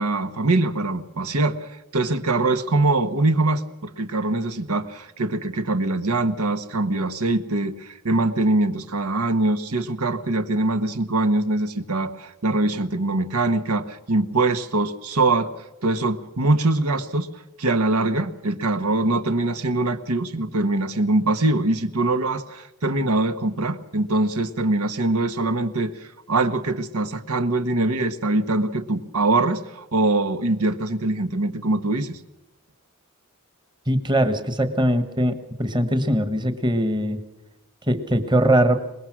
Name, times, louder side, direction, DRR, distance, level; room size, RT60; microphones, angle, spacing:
voice 1, 0.0-15.5 15.8-17.3 17.6-32.2, right 2 dB, 85° right, 10 dB, 1.3 m, -23 dB
voice 2, 33.9-37.2 37.9-38.8, right 1 dB, 20° right, 10 dB, 1.3 m, -21 dB
24.0 x 20.5 x 6.2 m, 0.97 s
head